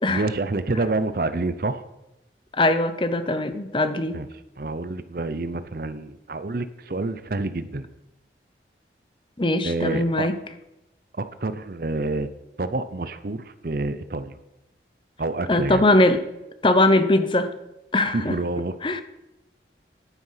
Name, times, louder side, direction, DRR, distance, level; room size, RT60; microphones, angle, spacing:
voice 1, 0.1-1.8 4.1-4.3 4.6-7.9 9.6-10.3 11.1-12.3 12.6-14.4 15.2-15.8 18.1-18.7, right 2 dB, 50° right, 13 dB, 0.6 m, -28 dB
voice 2, 2.5-4.2 9.4-10.3 15.5-16.2 16.6-17.5 17.9-18.3 18.8-19.0, left 2 dB, 25° left, 10 dB, 0.7 m, -21 dB
11.0 x 9.6 x 5.7 m, 0.93 s
head